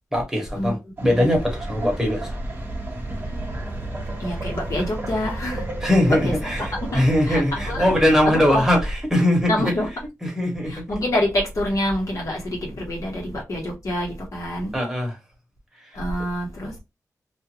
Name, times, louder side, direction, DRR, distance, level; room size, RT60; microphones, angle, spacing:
voice 1, 0.1-2.4 5.8-9.5 10.2-10.8 14.7-15.2 15.8-16.0, left 1 dB, 5° right, 1.3 m, -21 dB
sound 1, 1.0-8.0, right 2 dB, 35° right, 1.1 m, -35 dB
Subway metro underground, 1.4-8.9, equal, 30° left, 1.5 m, -34 dB
voice 2, 4.2-5.6 6.1-6.5 6.8-7.8 8.2-8.6 9.5-9.9 10.7-14.7 15.9-16.8, left 1 dB, 60° left, 1.3 m, -26 dB
2.7 x 2.5 x 3.0 m
wide cardioid pair, 85°, 6 cm